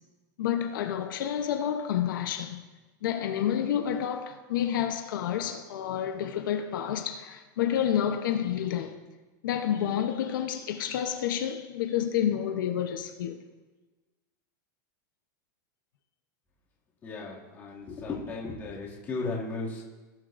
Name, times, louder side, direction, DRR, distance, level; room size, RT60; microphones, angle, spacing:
voice 1, 0.4-2.6 3.0-9.0 9.4-13.4, left 10 dB, 85° left, 0.8 m, -29 dB
voice 2, 17.0-19.8, left 3 dB, 20° left, 2.3 m, -35 dB
18.0 x 7.4 x 2.6 m
supercardioid pair, 175°, 11 cm